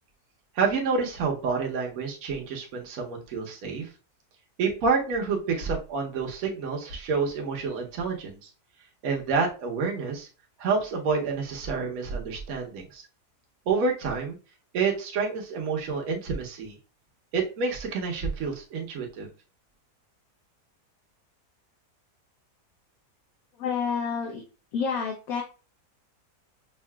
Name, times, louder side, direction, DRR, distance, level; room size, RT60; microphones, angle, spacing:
voice 1, 0.5-3.9 4.6-8.5 9.0-10.3 10.6-13.0 13.7-14.4 14.7-16.7 17.3-19.3, right 5 dB, 65° right, 1 dB, 1.2 m, -28 dB
voice 2, 23.6-24.4 24.7-25.4, left 6 dB, 70° left, 1 dB, 1.1 m, -29 dB
5.5 x 2.5 x 2.2 m, 0.34 s
omnidirectional pair, 1.7 m